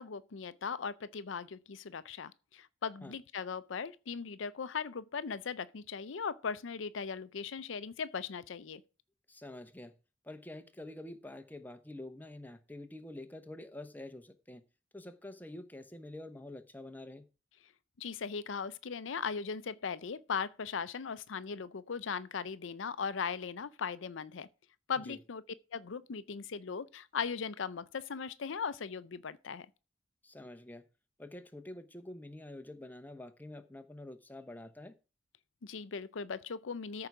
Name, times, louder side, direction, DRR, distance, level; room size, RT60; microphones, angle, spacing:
voice 1, 0.0-8.8 18.0-24.5 24.9-25.4 25.7-29.7 35.6-37.1, left 6 dB, 80° left, 0.5 m, -38 dB
voice 2, 9.3-9.9 10.2-14.6 14.9-17.2 25.0-25.2 30.2-30.9 31.2-34.9, left 1 dB, 10° left, 0.9 m, -47 dB
13.5 x 4.8 x 6.0 m
head